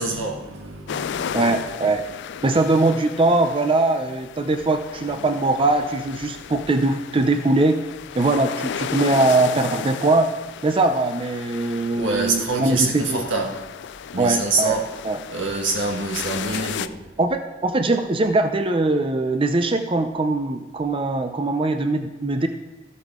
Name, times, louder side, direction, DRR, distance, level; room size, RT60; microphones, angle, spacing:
voice 1, 0.0-1.5 12.0-13.6 14.1-14.9 15.3-17.1, right 3 dB, 90° right, 1.6 m, -25 dB
sound 1, 0.9-16.9, left 8 dB, 65° left, 0.3 m, -34 dB
voice 2, 1.3-2.0 2.4-7.8 8.1-10.3 10.6-13.3 14.2-14.7 15.0-15.2 17.2-22.5, right 2 dB, 30° right, 0.6 m, -21 dB
14.0 x 8.2 x 3.7 m
head